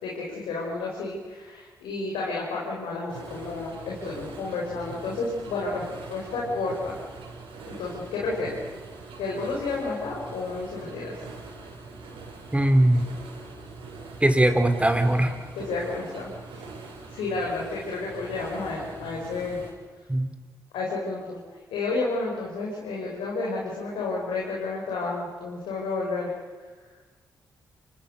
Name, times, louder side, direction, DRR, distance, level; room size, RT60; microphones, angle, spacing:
voice 1, 0.0-5.8 6.1-7.0 7.7-8.6 9.2-11.2 15.5-16.3 17.1-19.6 20.7-26.3, left 3 dB, 80° left, -3 dB, 5.5 m, -31 dB
sound 1, 3.1-19.7, right 3 dB, 75° right, 6.7 m, -43 dB
voice 2, 12.5-13.0 14.2-15.3 20.1-20.3, right 1 dB, 15° right, 7 dB, 3.8 m, -20 dB
28.5 x 25.0 x 6.7 m, 1.4 s
hypercardioid pair, 40°, 9 cm